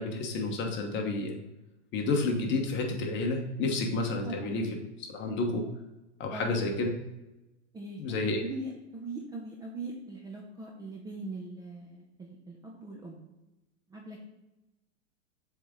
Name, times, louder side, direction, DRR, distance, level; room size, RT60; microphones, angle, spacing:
voice 1, 0.0-1.4 1.9-4.6 5.1-5.6 6.2-6.9 8.0-8.4, left 3 dB, 30° left, 2 dB, 1.2 m, -30 dB
voice 2, 4.2-4.6 6.3-6.6 7.7-13.2 13.9-14.3, right 2 dB, 10° right, -1 dB, 0.6 m, -41 dB
7.4 x 3.7 x 3.7 m, 0.99 s
hypercardioid pair, 130°, 35 cm